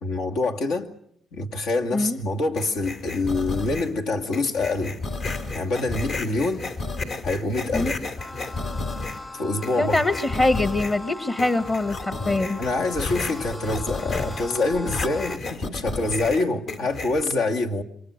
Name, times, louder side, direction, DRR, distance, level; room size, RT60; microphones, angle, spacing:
voice 1, 0.0-0.9 1.3-5.0 5.5-6.7 7.2-7.9 9.3-10.0 12.6-17.8, left 2 dB, 90° left, 4 dB, 2.4 m, -26 dB
sound 1, 2.6-4.0 4.3-9.3 9.6-11.0 11.4-17.2, left 3 dB, 65° left, 3.0 m, -32 dB
sound 2, 8.2-15.4, left 1 dB, 15° left, 0.9 m, -39 dB
voice 2, 9.8-12.6, left 2 dB, 30° left, 10 dB, 1.3 m, -23 dB
27.5 x 23.5 x 6.6 m, 0.67 s
cardioid pair, 90°, 0 cm